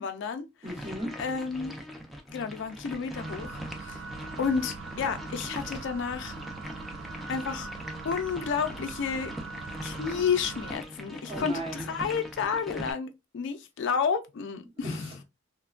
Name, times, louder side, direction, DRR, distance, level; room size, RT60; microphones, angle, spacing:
voice 1, 0.0-0.5 1.2-1.8 2.3-4.0 4.4-6.3 7.3-7.7 8.0-9.3 9.8-15.2, left 6 dB, 65° left, 0.4 m, -31 dB
voice 2, 0.6-1.1 11.3-11.9 14.8-15.2, right 1 dB, 30° right, 1.0 m, -37 dB
sound 1, 0.7-12.9, equal, ahead, 0.4 m, -41 dB
sound 2, 3.1-10.8, right 4 dB, 70° right, 0.5 m, -41 dB
3.1 x 2.1 x 2.3 m
head